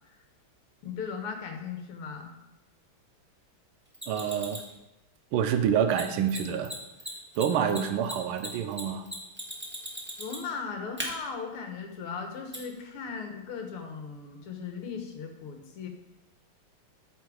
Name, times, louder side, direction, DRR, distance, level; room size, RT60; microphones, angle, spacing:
voice 1, 0.8-2.3 7.7-8.0 10.2-15.9, left 5 dB, 85° left, 4 dB, 2.0 m, -38 dB
Mechanisms, 3.9-4.7 5.9-6.0 6.3-6.4 6.6-6.7 7.0-10.6 11.0-11.1 12.5-12.6, equal, 5° right, 1.3 m, -37 dB
voice 2, 4.1-4.6 5.3-6.7 7.4-9.1, right 8 dB, 85° right, 8 dB, 1.5 m, -27 dB
12.0 x 4.5 x 4.8 m, 0.99 s
omnidirectional pair, 2.4 m